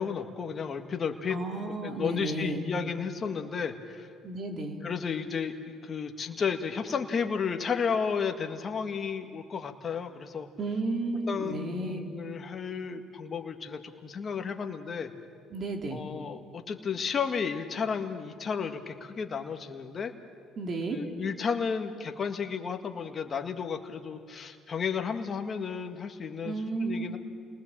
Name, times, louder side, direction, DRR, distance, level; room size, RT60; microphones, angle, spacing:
voice 1, 0.0-1.4 1.8-4.1 4.8-10.5 11.3-15.1 15.9-20.1 20.9-26.6 26.8-27.2, left 6 dB, 40° left, 5 dB, 1.8 m, -33 dB
voice 2, 1.3-2.6 4.2-4.8 10.6-12.0 15.5-16.0 20.6-21.0 26.4-27.1, right 2 dB, 50° right, 3 dB, 3.6 m, -32 dB
29.5 x 20.0 x 7.6 m, 2.2 s
supercardioid pair, 75°, 0 cm